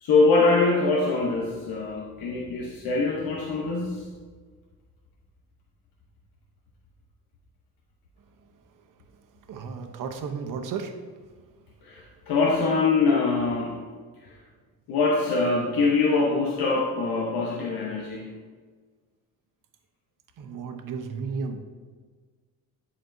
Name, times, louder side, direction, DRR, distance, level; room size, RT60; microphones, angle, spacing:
voice 1, 0.0-4.0 11.8-13.9 14.2-14.3 14.9-18.4, left 3 dB, 80° left, -1 dB, 1.0 m, -23 dB
voice 2, 9.5-10.9 20.4-21.6, right 5 dB, 60° right, 5 dB, 0.9 m, -33 dB
12.0 x 4.3 x 2.7 m, 1.5 s
cardioid pair, 95°, 35 cm